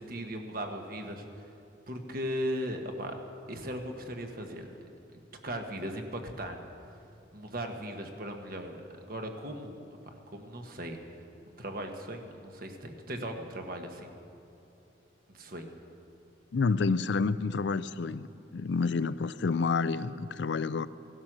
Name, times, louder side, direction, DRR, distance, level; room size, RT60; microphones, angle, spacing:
voice 1, 0.0-1.5 1.9-3.2 3.5-4.7 5.4-6.6 7.3-11.0 11.6-14.2 15.3-15.7, equal, 45° right, 4 dB, 1.4 m, -38 dB
voice 2, 16.5-18.3 18.5-20.9, left 4 dB, 65° left, 16 dB, 0.4 m, -29 dB
17.0 x 12.5 x 6.2 m, 2.8 s
head